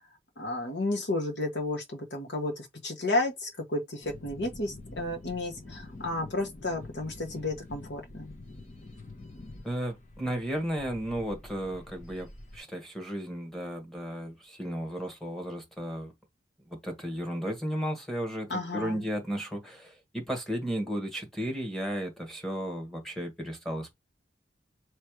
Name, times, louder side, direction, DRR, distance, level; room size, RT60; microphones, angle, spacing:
voice 1, 0.4-8.3 18.5-19.0, left 2 dB, 65° left, 1.4 m, -32 dB
sound 1, 4.0-12.6, left 2 dB, 40° left, 1.1 m, -47 dB
voice 2, 9.6-16.1 16.7-23.9, equal, ahead, 1.5 m, -34 dB
3.3 x 3.1 x 4.8 m
head